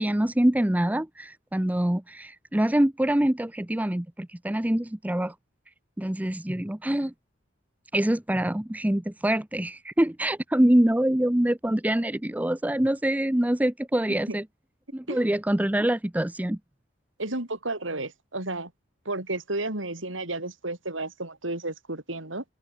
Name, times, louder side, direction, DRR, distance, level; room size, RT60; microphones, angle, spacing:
voice 1, 0.0-5.3 6.0-7.1 7.9-14.4 14.9-16.6, right 1 dB, 10° right, 0.6 m, -25 dB
voice 2, 17.2-18.7 19.1-22.4, right 2 dB, 80° right, 5.4 m, -32 dB
head